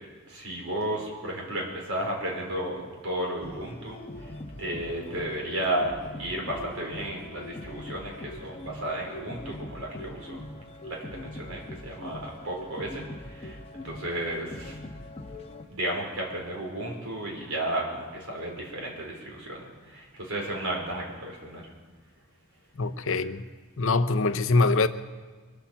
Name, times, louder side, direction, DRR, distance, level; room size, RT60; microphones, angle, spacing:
voice 1, 0.3-4.3 4.6-10.4 10.8-13.6 13.8-14.8 15.7-21.7, right 1 dB, 75° right, 4.5 m, -33 dB
sound 1, 3.4-15.6, left 1 dB, 25° left, 1.1 m, -42 dB
voice 2, 22.8-23.4 23.8-24.9, left 3 dB, 60° left, 0.7 m, -23 dB
23.5 x 8.4 x 7.3 m
head